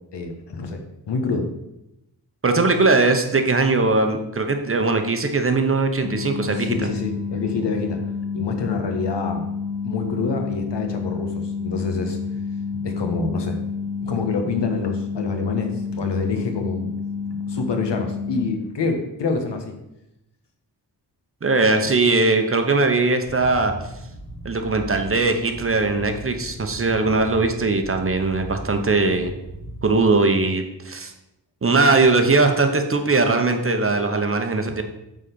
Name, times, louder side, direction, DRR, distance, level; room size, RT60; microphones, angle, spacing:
voice 1, 0.1-1.5 6.5-8.0 8.3-9.4 9.8-12.2 12.7-13.6 14.0-16.9 17.5-19.7, left 4 dB, 75° left, 5 dB, 1.4 m, -27 dB
voice 2, 2.4-6.9 21.4-23.7 24.4-29.3 29.8-31.1 31.6-34.8, right 3 dB, 30° right, 6 dB, 0.8 m, -20 dB
sound 1, 6.0-18.5, left 5 dB, 35° left, 1.5 m, -29 dB
sound 2, 23.2-29.9, right 1 dB, 55° left, 1.7 m, -38 dB
8.8 x 4.1 x 6.9 m, 0.89 s
wide cardioid pair, 170°, 42 cm